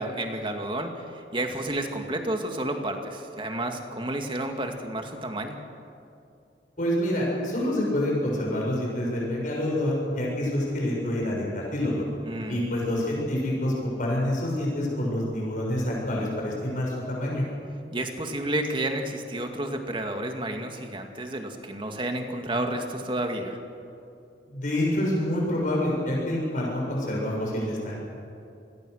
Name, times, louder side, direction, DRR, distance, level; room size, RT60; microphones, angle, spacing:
voice 1, 0.0-5.6 12.2-12.6 17.9-23.6, right 1 dB, 30° right, 4 dB, 2.2 m, -31 dB
voice 2, 6.8-12.0 12.5-13.7 14.0-17.4 24.5-28.0, left 1 dB, 50° left, -3 dB, 6.4 m, -27 dB
28.0 x 21.5 x 6.6 m, 2.6 s
head